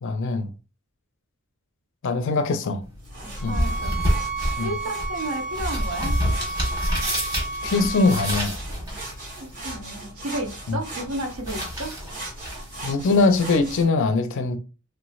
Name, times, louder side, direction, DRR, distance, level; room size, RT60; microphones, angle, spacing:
voice 1, 0.0-0.5 2.0-2.8 3.4-3.6 4.6-4.7 7.6-8.6 10.7-10.8 12.8-14.6, left 3 dB, 60° left, 0.5 m, -22 dB
sound 1, 2.8-13.8, equal, 15° right, 1.2 m, -30 dB
sound 2, 3.0-13.8, right 1 dB, 40° right, 1.4 m, -39 dB
sound 3, 3.4-8.4, right 3 dB, ahead, 0.7 m, -32 dB
voice 2, 3.5-3.9 4.6-6.1 9.6-11.9, right 1 dB, 75° right, 0.8 m, -32 dB
3.2 x 3.1 x 2.3 m
head